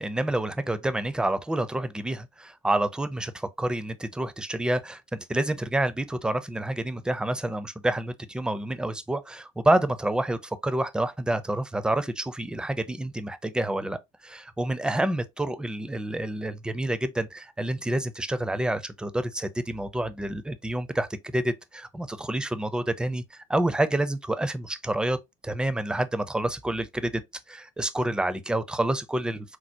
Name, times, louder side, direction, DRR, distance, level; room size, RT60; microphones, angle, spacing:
voice 1, 0.0-21.1 21.3-25.2 25.4-27.2 27.5-29.6, right 1 dB, 5° right, 0.4 m, -28 dB
4.4 x 2.0 x 2.6 m
hypercardioid pair, 60°, 18 cm